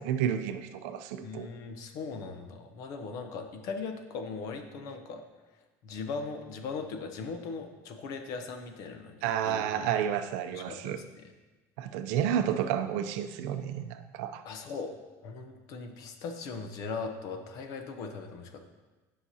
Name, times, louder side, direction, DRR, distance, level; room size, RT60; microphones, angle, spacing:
voice 1, 0.0-1.5 9.2-11.0 11.8-14.4, right 9 dB, 75° right, 9 dB, 0.5 m, -31 dB
voice 2, 1.2-5.2 5.8-9.8 10.5-11.3 14.4-18.6, left 4 dB, 45° left, 6 dB, 0.7 m, -39 dB
11.0 x 5.7 x 2.8 m, 1.2 s
cardioid pair, 175°, 8 cm